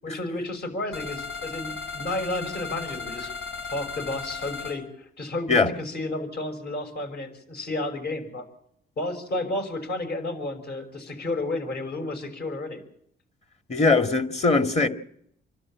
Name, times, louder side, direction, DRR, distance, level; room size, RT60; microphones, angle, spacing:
voice 1, 0.0-3.3 3.7-8.5 9.0-12.8, left 2 dB, 55° left, 6.1 m, -31 dB
sound 1, 0.9-4.8, left 5 dB, 75° left, 7.9 m, -35 dB
voice 2, 13.7-14.9, left 3 dB, 35° left, 2.2 m, -20 dB
28.0 x 12.5 x 8.7 m
cardioid pair, 90°, 20 cm